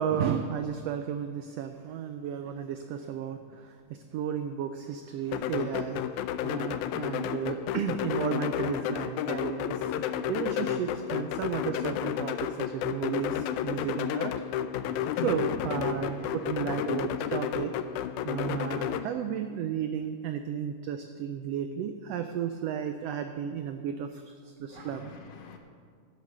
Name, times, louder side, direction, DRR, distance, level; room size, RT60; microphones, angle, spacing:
voice 1, 0.0-6.0 6.4-9.9 10.3-14.3 15.2-17.7 18.2-25.1, right 8 dB, 85° right, 1.4 m, -33 dB
sound 1, 5.3-19.0, left 10 dB, 90° left, 2.0 m, -32 dB
voice 2, 14.8-16.9 24.7-25.6, left 5 dB, 65° left, 1.9 m, -42 dB
12.5 x 8.5 x 6.5 m
omnidirectional pair, 3.5 m